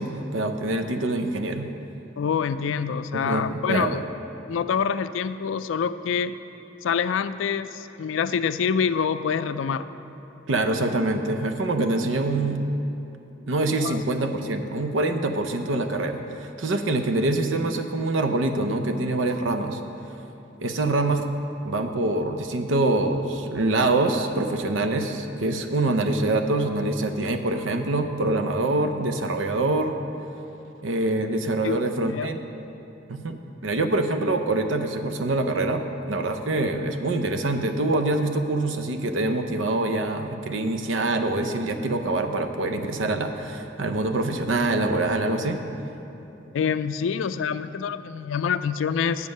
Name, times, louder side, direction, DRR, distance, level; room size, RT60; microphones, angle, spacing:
voice 1, 0.0-1.7 3.1-4.0 10.5-12.6 13.5-19.8 20.6-21.3 21.6-29.9 30.8-32.4 33.1-45.6, right 2 dB, 85° right, 7 dB, 0.7 m, -25 dB
voice 2, 2.2-4.0 4.5-6.3 6.8-9.9 13.7-14.0 31.6-32.3 46.5-49.3, left 6 dB, 80° left, 13 dB, 0.3 m, -26 dB
8.1 x 7.2 x 6.5 m, 2.9 s
head